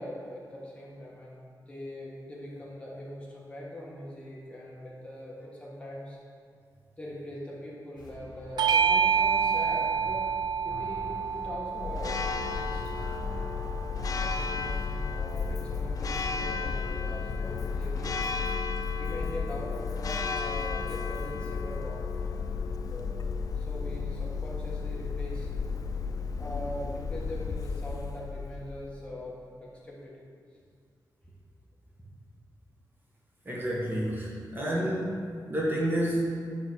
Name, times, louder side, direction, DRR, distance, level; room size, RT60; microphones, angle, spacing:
voice 1, 0.0-6.2 7.0-10.2 10.6-12.9 13.9-18.2 19.0-23.2 23.5-25.5 25.9-30.2 31.2-31.3, left 1 dB, 15° left, -5 dB, 1.7 m, -42 dB
sound 1, 8.0-18.2, left 2 dB, 70° left, 1.8 m, -44 dB
Bell / Doorbell, 8.6-13.4, right 6 dB, 75° right, 0.4 m, -28 dB
Church bell, 11.7-29.0, left 5 dB, 55° left, 0.5 m, -33 dB
voice 2, 33.4-35.2 35.5-36.4, right 1 dB, 25° right, -5 dB, 1.5 m, -29 dB
9.6 x 4.1 x 6.3 m, 2.1 s
wide cardioid pair, 140°, 7 cm